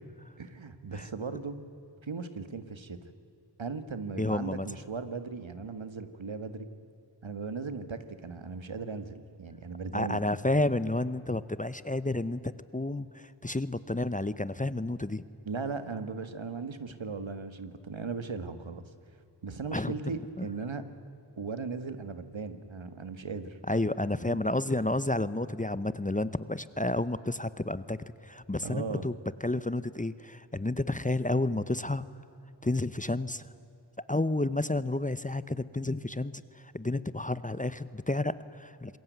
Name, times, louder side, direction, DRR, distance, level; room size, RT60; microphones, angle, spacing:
voice 1, 0.4-1.6 2.0-3.0 3.6-6.7 7.2-10.2 15.5-18.8 19.4-20.8 21.4-23.6 24.7-24.8 28.6-29.1, right 4 dB, 75° right, 11 dB, 1.8 m, -37 dB
voice 2, 4.2-4.7 9.9-15.2 19.7-19.9 20.4-20.5 23.7-28.0 28.2-29.2 29.4-32.0 32.6-33.4 34.1-39.0, left 2 dB, 15° left, 15 dB, 0.8 m, -31 dB
26.5 x 21.5 x 9.3 m, 2.7 s
wide cardioid pair, 70°, 46 cm